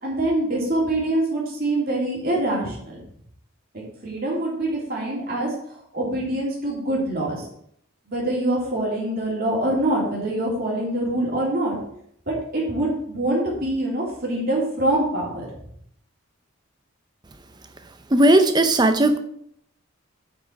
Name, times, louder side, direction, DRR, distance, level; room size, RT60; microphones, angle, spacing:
voice 1, 0.0-3.0 3.7-5.5 5.9-7.5 8.1-11.8 12.3-15.5, right 1 dB, 45° right, -4 dB, 3.3 m, -24 dB
voice 2, 18.1-19.2, right 1 dB, 20° right, 8 dB, 0.7 m, -16 dB
8.0 x 6.0 x 5.9 m, 0.69 s
head